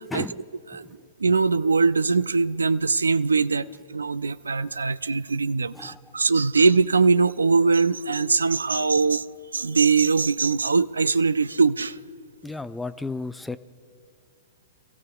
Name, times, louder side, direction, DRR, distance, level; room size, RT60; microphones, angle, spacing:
voice 1, 0.1-0.4 0.8-1.0 5.7-6.0 12.4-13.6, left 3 dB, 5° left, 0.4 m, -33 dB
voice 2, 1.2-9.3 9.5-12.0, right 4 dB, 85° right, 0.3 m, -21 dB
26.5 x 15.0 x 2.3 m
hypercardioid pair, 115°, 0 cm